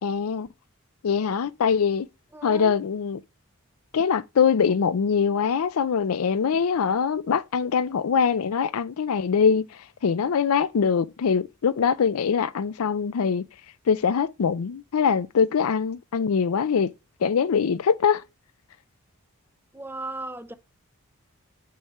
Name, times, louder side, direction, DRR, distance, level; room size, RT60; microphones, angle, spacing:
voice 1, 0.0-0.5 1.0-2.1 2.4-3.2 3.9-13.4 13.9-16.9 17.2-18.2, left 6 dB, 75° left, 0.4 m, -23 dB
voice 2, 2.3-2.7 19.7-20.5, right 2 dB, 10° right, 0.5 m, -36 dB
7.8 x 4.6 x 3.1 m
head